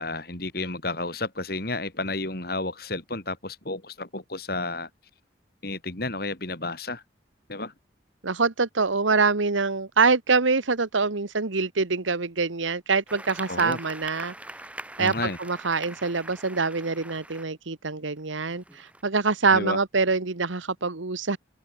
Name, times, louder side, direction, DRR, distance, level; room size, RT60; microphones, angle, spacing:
voice 1, 0.0-4.9 5.6-7.0 7.5-7.7 13.5-13.8 15.0-15.4 19.5-19.8, left 2 dB, 50° left, 3.4 m, -31 dB
voice 2, 8.2-14.3 15.0-21.4, right 4 dB, 85° right, 1.4 m, -25 dB
sound 1, 13.1-17.4 18.2-19.0, right 1 dB, 5° right, 2.4 m, -42 dB
head